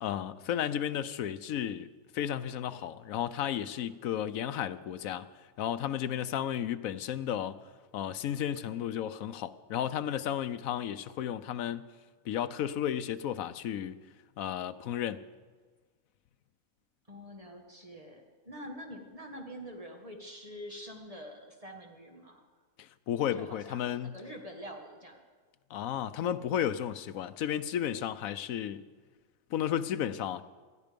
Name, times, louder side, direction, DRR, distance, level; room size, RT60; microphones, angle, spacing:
voice 1, 0.0-1.9 2.1-5.3 5.6-7.6 7.9-11.8 12.2-14.0 14.4-15.2 22.8-24.1 25.7-28.8 29.5-30.4, left 10 dB, 80° left, 1.1 m, -33 dB
voice 2, 17.1-22.4 23.3-25.2, equal, 25° right, 1.8 m, -46 dB
19.5 x 13.0 x 5.2 m
omnidirectional pair, 1.4 m